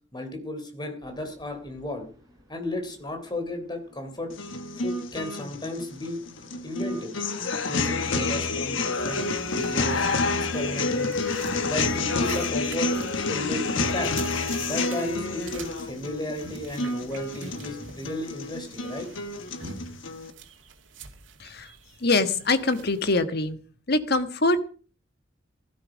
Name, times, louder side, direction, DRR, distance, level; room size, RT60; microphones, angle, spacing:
voice 1, 0.1-2.1 2.5-4.3 4.7-6.2 6.6-7.1 7.6-10.1 10.5-11.2 11.6-12.9 13.3-14.1 14.6-19.1, left 1 dB, 25° left, 6 dB, 3.5 m, -34 dB
sound 1, 1.0-15.4, right 1 dB, 20° right, 6.0 m, -50 dB
sound 2, 4.3-20.3, left 3 dB, 85° left, 1.3 m, -29 dB
sound 3, 9.0-23.2, right 3 dB, 85° right, 2.3 m, -45 dB
voice 2, 22.0-23.6 23.9-24.6, left 2 dB, 55° left, 10 dB, 1.5 m, -24 dB
16.0 x 13.0 x 5.2 m, 0.40 s
head